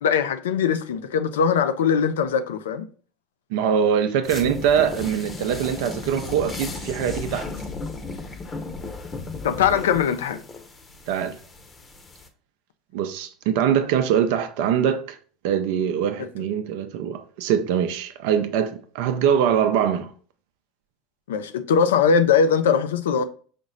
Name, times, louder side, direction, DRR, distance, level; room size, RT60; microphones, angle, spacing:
voice 1, 0.0-2.9 9.4-10.4 16.2-16.3 21.3-23.2, left 6 dB, 85° left, 0.4 m, -21 dB
voice 2, 3.5-7.5 11.1-11.4 12.9-15.2 15.4-20.1, right 8 dB, 70° right, 0.5 m, -23 dB
sound 1, 4.2-12.3, left 3 dB, 30° left, 0.8 m, -35 dB
5.1 x 2.0 x 3.7 m
hypercardioid pair, 90°, 0 cm